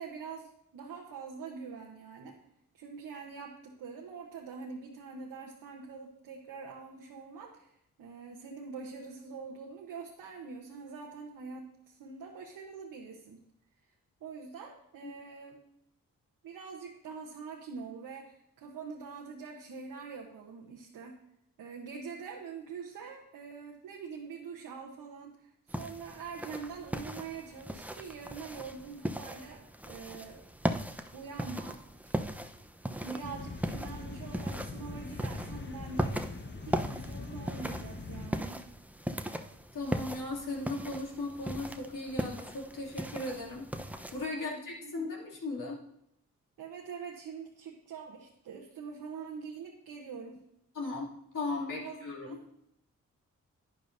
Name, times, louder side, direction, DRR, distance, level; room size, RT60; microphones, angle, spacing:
voice 1, 0.0-2.3 2.7-7.7 8.0-13.4 14.2-15.6 16.4-21.2 21.6-25.3 25.7-30.5 31.1-31.8 32.0-32.3 33.0-36.1 36.6-38.6 44.3-44.9 46.6-50.4 51.7-52.4, right 5 dB, 85° right, -1 dB, 1.1 m, -44 dB
sound 1, 25.7-44.3, right 1 dB, 5° right, 0.7 m, -38 dB
sound 2, 33.2-38.3, left 3 dB, 35° left, 1.1 m, -42 dB
voice 2, 39.7-43.7 44.1-45.8 50.7-52.4, left 2 dB, 65° left, -3 dB, 2.7 m, -37 dB
11.0 x 9.4 x 2.7 m, 0.77 s
supercardioid pair, 45°, 34 cm